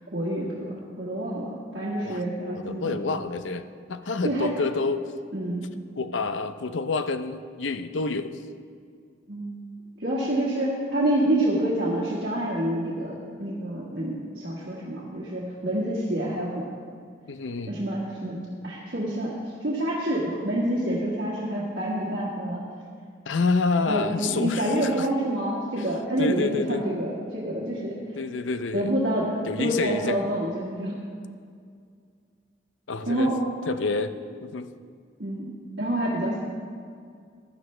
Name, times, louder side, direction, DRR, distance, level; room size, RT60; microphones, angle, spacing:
voice 1, 0.1-3.0 4.2-4.5 5.3-5.7 9.3-9.6 10.0-16.7 17.7-19.4 19.6-22.6 23.9-28.0 28.7-31.0 33.1-33.4 35.2-36.4, right 1 dB, 60° right, -6 dB, 1.6 m, -27 dB
voice 2, 2.5-3.6 3.9-5.0 6.0-8.4 17.3-17.8 23.3-25.1 25.8-25.9 26.2-26.8 28.2-28.9 29.4-30.2 32.9-33.3 33.6-34.1 34.4-34.7, left 3 dB, 85° left, 11 dB, 0.6 m, -28 dB
15.5 x 11.0 x 3.3 m, 2.2 s
head